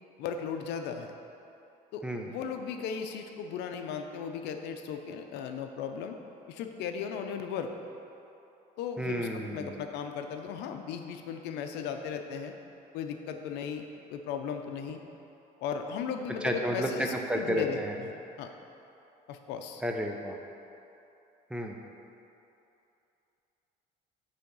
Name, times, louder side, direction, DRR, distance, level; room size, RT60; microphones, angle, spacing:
voice 1, 0.2-1.1 1.9-6.2 6.5-7.7 8.8-12.5 12.9-15.0 15.6-18.5 19.3-19.8, left 7 dB, 85° left, 5 dB, 0.5 m, -36 dB
voice 2, 9.0-9.8 16.4-17.9 19.8-20.4 21.5-21.8, right 1 dB, 5° right, 2 dB, 0.6 m, -31 dB
8.4 x 3.5 x 5.4 m, 2.8 s
cardioid pair, 110°, 17 cm